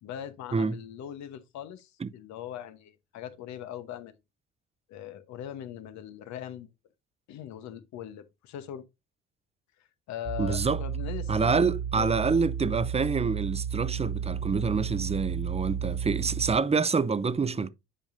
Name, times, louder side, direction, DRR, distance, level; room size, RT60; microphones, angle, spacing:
voice 1, 0.0-4.2 4.9-6.7 7.3-8.8 9.8-11.6 11.9-12.1, left 10 dB, 70° left, 1.1 m, -40 dB
sound 1, 10.2-16.5, right 8 dB, 85° right, 2.1 m, -33 dB
voice 2, 10.4-10.8 11.3-17.7, right 4 dB, 20° right, 0.7 m, -27 dB
10.0 x 5.1 x 2.6 m
hypercardioid pair, 65°, 30 cm